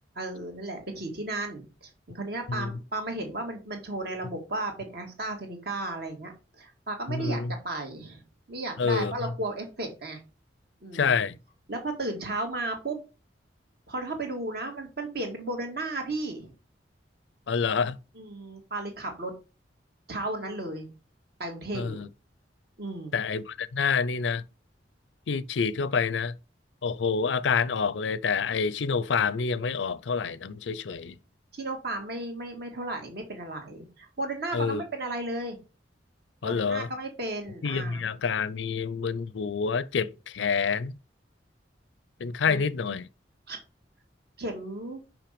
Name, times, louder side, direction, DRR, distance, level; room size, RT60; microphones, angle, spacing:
voice 1, 0.2-10.2 10.8-11.1 11.7-13.0 13.9-16.5 18.2-19.3 20.1-20.9 21.4-22.0 22.8-23.2 31.5-35.6 36.4-38.0 42.5-42.6 43.5-43.6 44.4-45.0, right 2 dB, 60° right, 2.0 m, -34 dB
voice 2, 7.1-7.5 8.8-9.1 10.9-11.4 17.5-18.0 21.7-22.1 23.1-24.4 25.3-26.3 26.8-31.2 34.5-34.8 36.4-36.9 37.6-41.0 42.2-43.1, left 5 dB, 90° left, 0.5 m, -27 dB
5.8 x 5.4 x 5.1 m
head